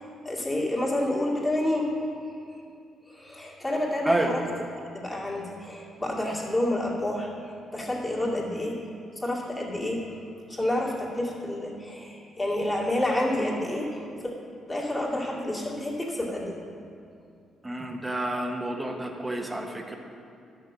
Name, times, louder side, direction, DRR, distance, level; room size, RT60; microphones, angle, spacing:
voice 1, 0.0-1.9 3.1-4.4 4.9-8.8 9.2-10.0 10.5-14.3 14.7-16.6, left 1 dB, 15° left, -4 dB, 2.3 m, -29 dB
voice 2, 4.0-4.3 17.6-20.0, right 1 dB, 15° right, 3 dB, 1.2 m, -29 dB
12.0 x 6.6 x 6.1 m, 2.5 s
cardioid pair, 100°, 0 cm